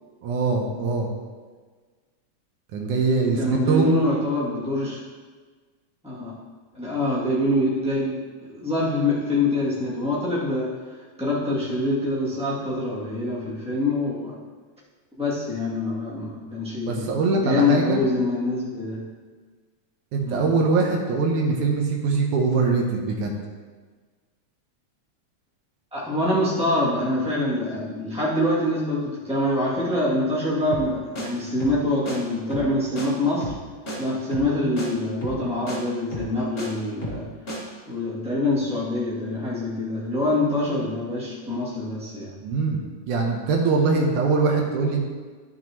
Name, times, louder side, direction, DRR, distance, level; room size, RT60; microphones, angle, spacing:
voice 1, 0.2-1.1 2.7-4.0 16.8-18.0 20.1-23.3 42.4-45.0, right 4 dB, 80° right, 1 dB, 2.3 m, -22 dB
voice 2, 3.4-5.0 6.0-6.3 6.7-10.7 11.2-14.4 15.2-19.0 20.3-20.6 25.9-33.5 34.0-37.3 37.9-42.3, left 1 dB, ahead, -9 dB, 2.0 m, -25 dB
sound 1, 30.7-30.9 31.1-31.3 31.6-31.8 32.0-32.2 32.5-32.7 33.0-33.1 33.4-33.6 33.9-34.0 34.3-34.5 34.8-34.9 35.2-35.4 35.7-35.8 36.1-36.7 37.0-37.2 37.5-37.6, equal, 25° left, 2.2 m, -32 dB
14.0 x 6.1 x 3.1 m, 1.5 s
omnidirectional pair, 3.6 m